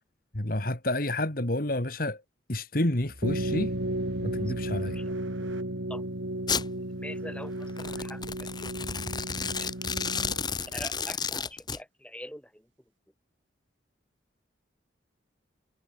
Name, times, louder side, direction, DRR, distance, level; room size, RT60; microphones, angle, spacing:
voice 1, 0.3-2.2 2.5-3.7 4.2-5.0, left 1 dB, 50° left, 2.4 m, -29 dB
sound 1, 3.0-6.0, equal, 55° right, 6.3 m, -51 dB
sound 2, 3.2-10.7, right 1 dB, 85° right, 4.6 m, -34 dB
Domestic sounds home sounds, 6.5-6.7 7.7-11.8, left 5 dB, 20° left, 4.3 m, -32 dB
voice 2, 6.8-8.7 9.4-9.8 10.7-12.7, left 1 dB, 5° left, 5.2 m, -44 dB
head